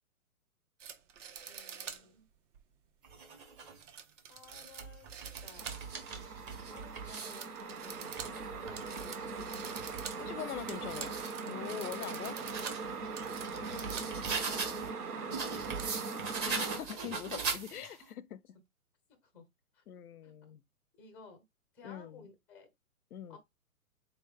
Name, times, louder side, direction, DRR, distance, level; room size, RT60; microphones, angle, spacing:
sound 1, 0.8-2.1 2.5-2.6 3.8-6.0 6.4-6.9 7.1-14.2 14.5-14.6 15.1-16.4, right 7 dB, 55° right, 1.0 m, -47 dB
voice 1, 1.5-2.3 4.3-5.1 5.4-9.7 13.6-15.9 19.2-19.4 19.7-19.8 20.2-20.3 21.0-21.4 21.7-22.7 23.3-23.4, left 3 dB, 5° left, 0.5 m, -56 dB
sound 2, 3.0-3.8 4.5-7.5 7.9-11.4 11.8-14.9 15.3-18.0, right 5 dB, 20° right, 1.0 m, -41 dB
sound 3, 5.6-16.8, right 4 dB, 80° right, 1.1 m, -41 dB
voice 2, 10.2-12.4 16.4-18.4 19.9-20.6 21.8-22.2 23.1-23.4, left 11 dB, 85° left, 0.6 m, -43 dB
4.0 x 3.4 x 3.4 m
hypercardioid pair, 135°, 44 cm